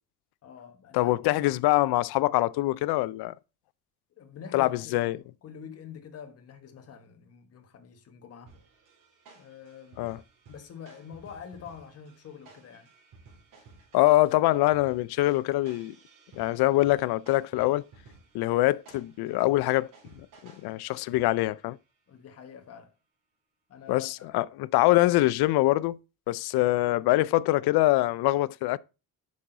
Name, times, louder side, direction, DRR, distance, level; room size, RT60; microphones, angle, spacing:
voice 1, 0.4-1.6 4.2-5.1 5.4-8.5 9.3-10.1 10.5-12.9 22.1-22.9 23.7-24.3, left 7 dB, 40° left, 1.4 m, -46 dB
voice 2, 0.9-3.3 4.5-5.2 10.0-10.2 13.9-16.0 16.3-17.8 18.3-19.9 20.2-21.8 23.9-26.0 26.3-28.8, left 17 dB, 85° left, 0.5 m, -24 dB
sound 1, 8.5-21.6, right 4 dB, 55° right, 3.9 m, -56 dB
8.5 x 6.2 x 4.0 m
cardioid pair, 180°, 38 cm